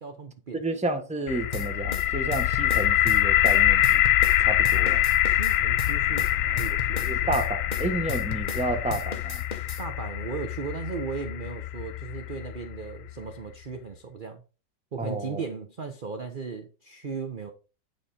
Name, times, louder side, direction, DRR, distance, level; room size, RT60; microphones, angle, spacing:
voice 1, 0.0-0.6 5.3-7.3 9.8-14.4 14.9-17.5, right 5 dB, 45° right, 0.7 m, -36 dB
voice 2, 0.5-4.0 4.4-5.0 7.0-9.4 15.0-15.4, right 2 dB, 5° right, 0.9 m, -31 dB
sound 1, 1.3-13.1, left 13 dB, 90° left, 0.7 m, -25 dB
sound 2, 1.5-4.4 4.6-8.6 8.9-9.8, left 4 dB, 35° left, 0.8 m, -36 dB
9.6 x 4.2 x 5.1 m
omnidirectional pair, 2.0 m